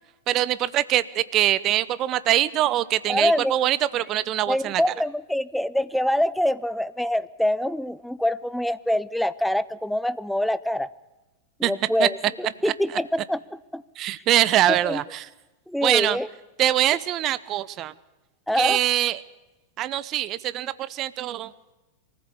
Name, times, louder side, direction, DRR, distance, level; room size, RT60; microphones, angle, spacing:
voice 1, 0.3-4.9 11.6-11.7 12.0-12.1 12.9-13.0 14.0-15.3 15.8-16.2 16.6-17.9 18.5-19.2 19.8-21.5, right 13 dB, 35° right, 18 dB, 0.8 m, -23 dB
voice 2, 3.1-3.5 4.5-10.9 11.6-13.4 13.7-13.8 14.8-15.0 15.7-16.3 18.5-18.8, left 1 dB, ahead, 17 dB, 0.7 m, -25 dB
23.5 x 15.0 x 8.5 m, 1.1 s
figure-of-eight pair, 95°, 0 cm